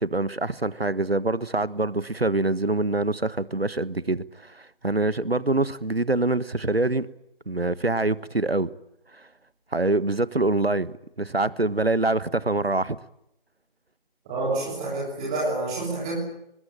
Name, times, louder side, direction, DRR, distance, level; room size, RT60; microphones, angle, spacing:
voice 1, 0.0-7.1 7.5-8.7 9.7-13.0, right 2 dB, 85° right, 1.4 m, -25 dB
voice 2, 14.2-16.2, right 2 dB, 5° right, 3.2 m, -28 dB
24.0 x 20.5 x 8.9 m
figure-of-eight pair, 165°, 30 cm